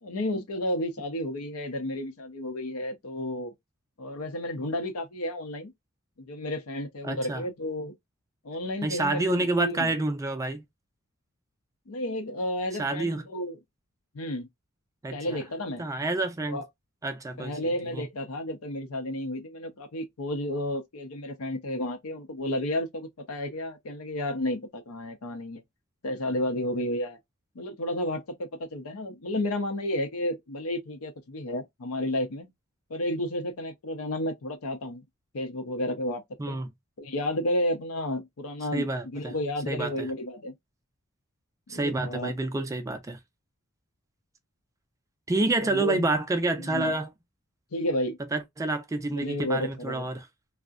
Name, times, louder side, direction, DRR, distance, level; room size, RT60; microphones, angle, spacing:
voice 1, 0.0-3.5 4.0-5.7 6.2-7.9 8.4-9.2 9.6-9.9 11.9-13.6 14.1-14.5 15.1-15.9 16.5-16.7 17.4-25.6 26.0-27.2 27.5-32.5 32.9-35.0 35.3-36.6 37.0-40.5 41.7-42.3 45.6-46.1 46.6-46.9 47.7-48.2 49.1-50.1, left 1 dB, 75° left, 0.6 m, -32 dB
voice 2, 7.0-7.4 8.8-10.6 12.8-13.2 15.0-15.4 15.8-16.6 17.0-18.1 36.4-36.7 38.7-39.3 39.7-40.1 41.7-43.2 45.3-47.1 48.3-50.2, right 2 dB, 15° right, 0.3 m, -28 dB
2.5 x 2.1 x 2.3 m
head